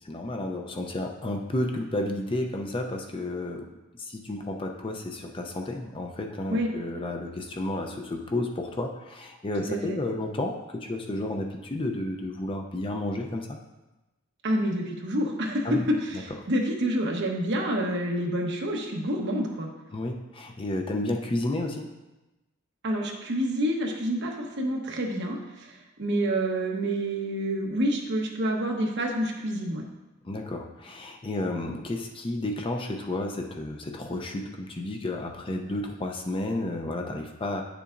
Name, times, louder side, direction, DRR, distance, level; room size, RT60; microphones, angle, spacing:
voice 1, 0.0-3.7 4.0-13.6 15.6-15.8 19.9-21.9 30.2-37.6, left 1 dB, 25° left, 3 dB, 0.6 m, -31 dB
voice 2, 14.4-19.7 22.8-25.7 26.0-29.8, equal, 55° right, 0 dB, 1.1 m, -28 dB
9.4 x 6.8 x 2.5 m, 1.0 s
head